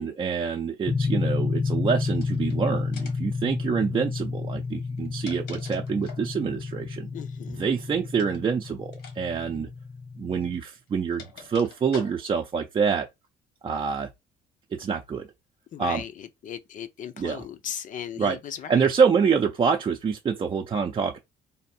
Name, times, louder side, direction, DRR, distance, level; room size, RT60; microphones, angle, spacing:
voice 1, 0.0-7.1 7.6-9.7 10.2-13.1 13.6-14.1 14.7-15.3 15.8-16.0 17.2-17.4 18.2-18.4 18.7-21.2, right 6 dB, 30° right, 0.6 m, -26 dB
sound 1, 0.9-10.6, left 4 dB, 15° left, 0.3 m, -30 dB
sound 2, 2.1-2.5 2.9-3.3 4.8-6.3 8.1-8.4 8.9-9.2 9.4-9.6 10.5-12.5, left 6 dB, 75° left, 1.4 m, -45 dB
voice 2, 7.1-7.7 15.7-18.9, left 9 dB, 50° left, 0.6 m, -37 dB
3.4 x 2.5 x 4.3 m
cardioid pair, 110°, 17 cm